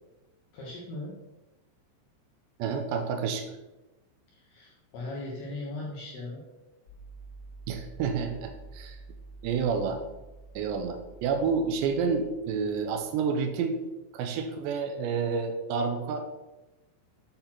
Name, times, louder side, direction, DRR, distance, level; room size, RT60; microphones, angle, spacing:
voice 1, 0.5-1.1 4.3-6.4, left 2 dB, 70° left, -4 dB, 2.6 m, -38 dB
voice 2, 2.6-3.4 7.7-9.0 9.4-10.0 10.6-13.8 14.1-16.2, right 5 dB, 85° right, 5 dB, 2.5 m, -29 dB
sound 1, 6.9-12.9, right 3 dB, 45° left, 1.9 m, -48 dB
8.8 x 4.1 x 5.9 m, 1.0 s
omnidirectional pair, 5.9 m